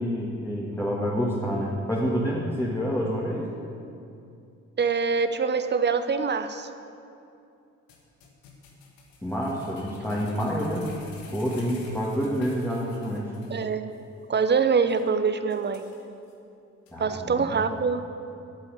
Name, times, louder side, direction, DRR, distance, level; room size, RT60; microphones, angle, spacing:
voice 1, 0.0-3.5 9.2-13.3 16.9-17.5, equal, 5° left, -5 dB, 2.0 m, -28 dB
voice 2, 4.8-6.7 13.5-13.9 14.3-15.8 17.0-18.0, right 5 dB, 30° right, 10 dB, 0.8 m, -24 dB
sound 1, 7.9-13.6 13.9-14.0 14.4-14.5 14.9-15.0 15.5-16.3 16.9-17.0, left 4 dB, 70° left, 1.5 m, -51 dB
8.9 x 8.2 x 8.2 m, 2.6 s
figure-of-eight pair, 40°, 36 cm